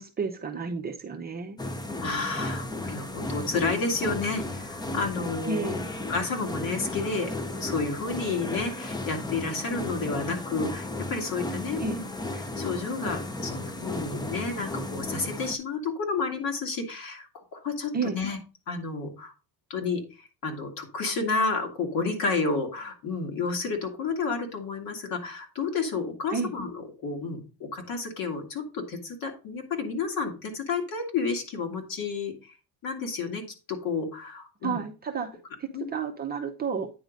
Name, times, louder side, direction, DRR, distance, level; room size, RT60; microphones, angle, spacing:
voice 1, 0.0-1.6 5.4-5.9 11.8-12.0 17.9-18.2 26.3-26.5 34.6-36.9, right 5 dB, 20° right, 2 dB, 0.7 m, -31 dB
sound 1, 1.6-15.6, left 2 dB, 10° left, 0.5 m, -35 dB
voice 2, 2.0-5.8 6.1-12.1 12.4-18.4 18.7-19.3 19.7-20.0 20.4-26.7 27.0-32.5 32.8-34.8 35.7-35.9, left 4 dB, 50° left, 3 dB, 2.2 m, -31 dB
9.3 x 3.8 x 5.1 m, 0.32 s
cardioid pair, 145°, 42 cm